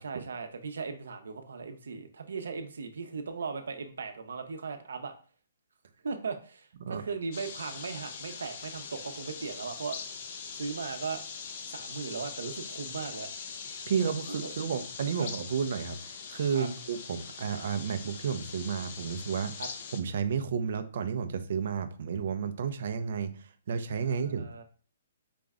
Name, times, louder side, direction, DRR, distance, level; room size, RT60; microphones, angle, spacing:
voice 1, 0.0-5.1 6.0-10.0 10.3-11.2 11.7-13.3 14.3-14.5 15.2-15.3 16.5-16.7 19.6-19.7 24.0-24.6, right 5 dB, 90° right, 7 dB, 0.7 m, -38 dB
sound 1, 7.3-20.0, left 6 dB, 35° left, 0.5 m, -42 dB
voice 2, 13.9-19.6 19.9-24.6, right 6 dB, 45° right, 10 dB, 0.5 m, -32 dB
4.9 x 2.2 x 3.5 m, 0.40 s
hypercardioid pair, 180°, 0 cm